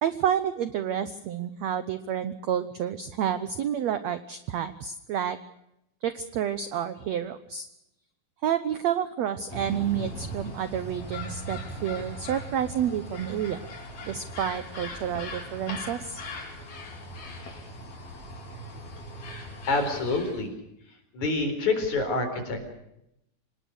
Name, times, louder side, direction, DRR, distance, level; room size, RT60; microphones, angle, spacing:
voice 1, 0.0-5.4 6.0-7.7 8.4-13.7 14.0-16.2, right 9 dB, 75° right, 12 dB, 1.6 m, -29 dB
sound 1, 9.5-20.5, equal, 85° left, 6.6 m, -39 dB
voice 2, 19.7-20.5 21.1-22.6, left 3 dB, 50° left, 6 dB, 5.5 m, -27 dB
26.5 x 19.5 x 6.4 m, 0.82 s
omnidirectional pair, 4.2 m